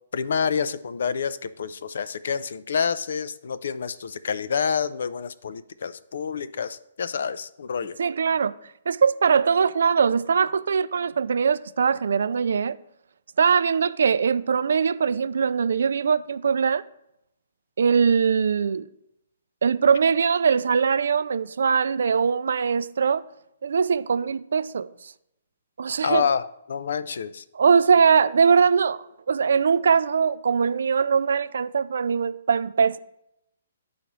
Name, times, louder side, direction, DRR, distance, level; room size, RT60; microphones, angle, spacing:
voice 1, 0.1-8.0 26.0-27.4, left 6 dB, 70° left, 0.4 m, -28 dB
voice 2, 8.0-8.5 8.9-12.8 13.4-16.8 17.8-18.9 19.6-23.3 23.6-25.1 25.8-26.3 27.5-33.0, right 6 dB, 75° right, 0.3 m, -21 dB
11.0 x 3.9 x 3.1 m
hypercardioid pair, 140°, 0 cm